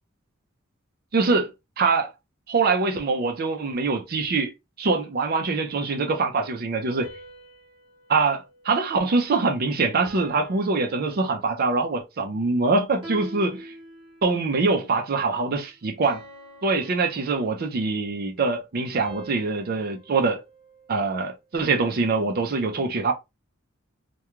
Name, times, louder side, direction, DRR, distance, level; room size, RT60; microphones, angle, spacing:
voice 1, 1.1-1.5 1.8-2.1 2.5-4.5 4.8-7.1 8.1-13.7 14.2-16.2 16.6-20.4 20.9-23.1, right 3 dB, 45° right, 0.4 m, -24 dB
sound 1, 7.0-9.5 10.0-11.8 13.0-14.6 16.0-17.9 19.0-21.4, right 1 dB, 25° right, 0.9 m, -46 dB
2.3 x 2.2 x 2.9 m
head